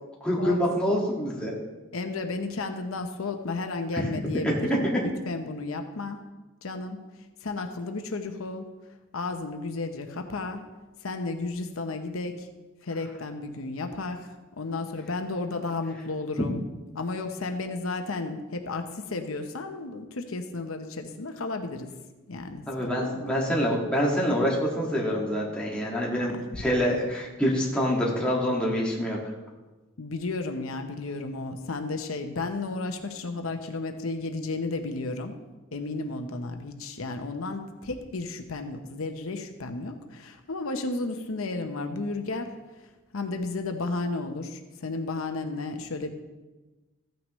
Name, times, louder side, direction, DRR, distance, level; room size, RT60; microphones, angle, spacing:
voice 1, 0.2-1.5 3.9-4.1 4.4-5.0 22.7-29.2, equal, 5° left, -5 dB, 1.9 m, -26 dB
voice 2, 1.9-6.2 6.6-7.0 7.4-8.7 9.1-10.6 11.0-12.5 12.8-16.6 16.9-21.9 22.3-23.3 26.2-26.3 26.5-26.6 30.0-35.3 35.7-42.5 42.8-42.9 43.1-46.1, left 3 dB, 85° left, 5 dB, 0.9 m, -33 dB
14.5 x 9.3 x 3.1 m, 1.2 s
head